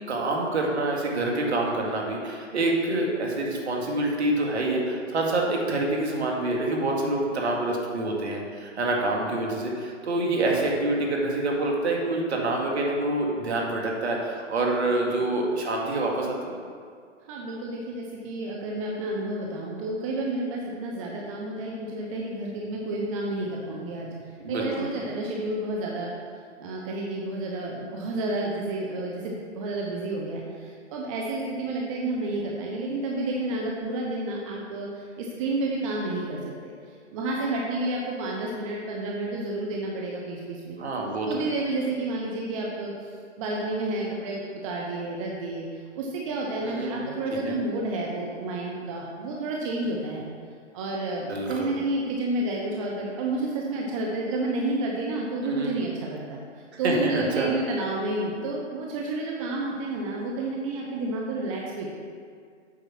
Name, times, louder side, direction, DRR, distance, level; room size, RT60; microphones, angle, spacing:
voice 1, 0.1-16.5 24.4-24.9 40.8-41.5 46.6-47.1 51.3-51.8 55.4-55.8 56.8-57.5, right 2 dB, 60° right, -1 dB, 2.1 m, -27 dB
voice 2, 15.0-15.3 17.3-26.1 26.6-40.8 41.2-43.1 43.4-50.3 50.7-56.4 56.8-61.9, right 2 dB, 25° right, -2 dB, 0.8 m, -30 dB
8.3 x 5.3 x 6.0 m, 2.1 s
hypercardioid pair, 145°, 37 cm